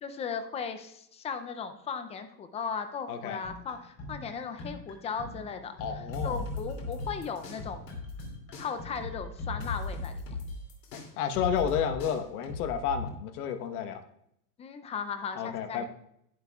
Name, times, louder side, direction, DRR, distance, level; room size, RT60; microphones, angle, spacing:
voice 1, 0.0-8.0 8.6-10.2 14.6-15.8, left 6 dB, 15° left, 9 dB, 0.5 m, -37 dB
voice 2, 3.1-3.4 5.8-6.4 10.9-14.0 15.4-15.9, left 8 dB, 65° left, 8 dB, 1.3 m, -31 dB
sound 1, 3.4-9.5, left 2 dB, 40° left, 4.0 m, -44 dB
sound 2, 6.1-8.3 8.5-13.1, left 3 dB, 80° left, 2.9 m, -37 dB
11.5 x 10.5 x 2.4 m, 0.75 s
hypercardioid pair, 120°, 49 cm